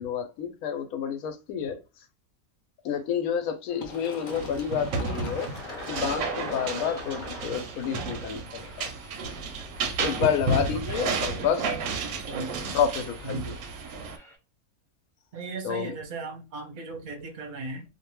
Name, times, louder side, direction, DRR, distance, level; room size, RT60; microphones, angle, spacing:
voice 1, 0.0-2.1 2.8-5.5 5.9-8.9 10.0-11.7 12.7-13.6 15.6-15.9, left 7 dB, 75° left, 1.0 m, -29 dB
sound 1, 3.7-14.4, equal, 5° left, 0.7 m, -54 dB
Fill (with liquid), 3.8-9.2, left 2 dB, 40° left, 0.7 m, -40 dB
sound 2, 4.3-14.2, right 4 dB, 85° right, 1.1 m, -32 dB
voice 2, 10.9-11.7 12.3-12.7 13.2-13.5 15.3-17.8, right 3 dB, 45° right, 0.7 m, -37 dB
2.6 x 2.2 x 2.9 m
omnidirectional pair, 1.5 m